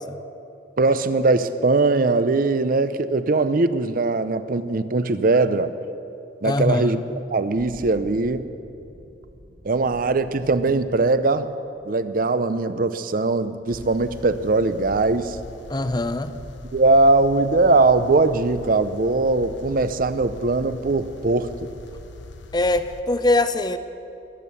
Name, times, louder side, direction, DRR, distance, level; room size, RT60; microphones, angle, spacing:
voice 1, 0.8-5.7 6.4-7.0 7.3-8.5 9.6-11.5 11.8-15.4 16.7-21.5, right 3 dB, 50° right, 13 dB, 0.6 m, -20 dB
voice 2, 6.4-7.0 15.7-16.3 22.5-23.8, left 2 dB, 25° left, 11 dB, 0.6 m, -22 dB
Thunder / Rain, 7.1-16.1, equal, 80° right, 2.7 m, -49 dB
sound 1, 13.7-23.0, left 2 dB, 75° left, 0.9 m, -42 dB
21.0 x 8.4 x 7.0 m, 2.7 s
head